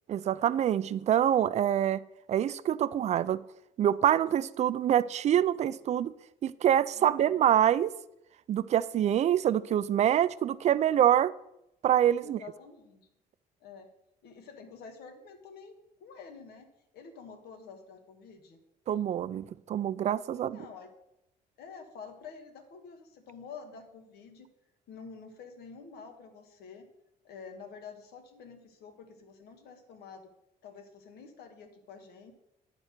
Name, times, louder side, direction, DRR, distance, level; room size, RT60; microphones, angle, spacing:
voice 1, 0.1-2.0 2.3-3.4 3.8-6.1 6.4-7.9 8.5-11.3 11.8-12.4 18.9-20.6, right 10 dB, 45° right, 17 dB, 0.4 m, -25 dB
voice 2, 6.9-7.4 12.2-13.1 13.6-13.9 14.2-18.6 20.3-20.9 21.6-24.5 24.9-26.9 27.2-30.3 30.6-32.3, left 5 dB, 80° left, 6 dB, 1.5 m, -48 dB
9.4 x 4.5 x 6.6 m, 0.84 s
cardioid pair, 125°, 16 cm